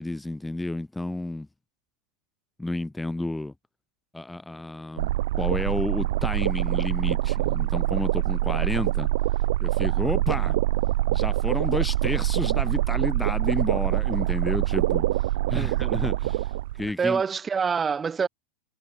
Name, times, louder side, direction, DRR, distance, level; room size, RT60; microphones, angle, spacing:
voice 1, 0.0-1.5 2.6-3.5 4.1-5.1 5.4-9.1 9.6-10.6 11.1-15.0 15.5-16.5 16.8-17.2, left 2 dB, 5° left, 1.4 m, -31 dB
sound 1, 5.0-16.9, right 16 dB, 55° right, 2.1 m, -25 dB
voice 2, 15.5-16.0 17.0-18.3, right 6 dB, 20° right, 2.6 m, -26 dB
figure-of-eight pair, 90°, 0 cm